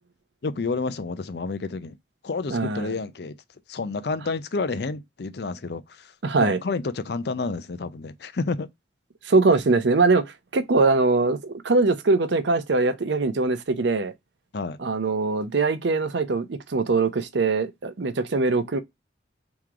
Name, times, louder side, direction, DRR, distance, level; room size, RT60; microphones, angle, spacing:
voice 1, 0.4-2.0 2.2-3.3 3.7-6.1 6.4-8.7 14.5-14.8, left 4 dB, 60° left, 0.5 m, -30 dB
voice 2, 2.5-2.9 6.2-6.6 9.2-14.1 14.8-18.8, right 3 dB, 70° right, 0.6 m, -22 dB
3.7 x 3.0 x 4.7 m
head